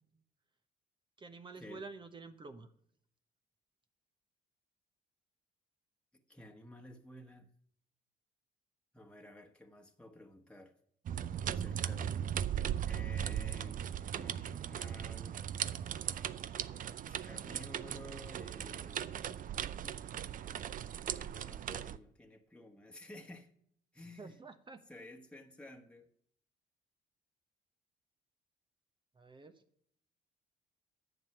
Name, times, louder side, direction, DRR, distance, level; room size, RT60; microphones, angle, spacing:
voice 1, 1.2-2.7 24.2-24.8 29.2-29.5, right 3 dB, 30° right, 1.1 m, -49 dB
voice 2, 6.1-7.5 8.9-10.7 11.5-12.2 12.8-13.8 14.1-15.4 16.7-16.8 17.0-19.2 21.1-23.5 23.9-24.4 24.9-26.1, left 1 dB, 5° left, 1.4 m, -53 dB
sound 1, 11.1-22.0, right 9 dB, 50° right, 0.6 m, -38 dB
10.5 x 7.3 x 5.9 m
supercardioid pair, 80°, 17 cm